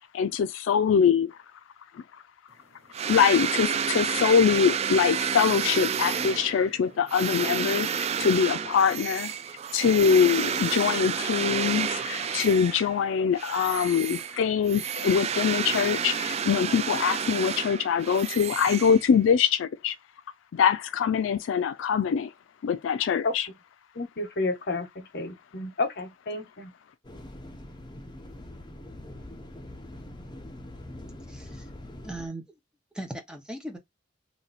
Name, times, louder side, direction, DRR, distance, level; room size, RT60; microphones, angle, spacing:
voice 1, 0.1-1.4 1.9-2.2 3.0-9.3 9.7-20.0 20.5-22.3 22.6-23.5, left 7 dB, 75° left, 0.3 m, -23 dB
sound 1, 2.9-13.0 13.3-19.4, right 7 dB, 35° right, 0.3 m, -30 dB
voice 2, 23.9-26.7, left 3 dB, 60° left, 1.0 m, -31 dB
sound 2, 27.0-32.3, left 1 dB, 25° left, 0.8 m, -43 dB
voice 3, 31.3-31.7 32.0-32.5 32.9-33.8, right 1 dB, 5° right, 0.9 m, -38 dB
3.2 x 2.9 x 4.0 m
head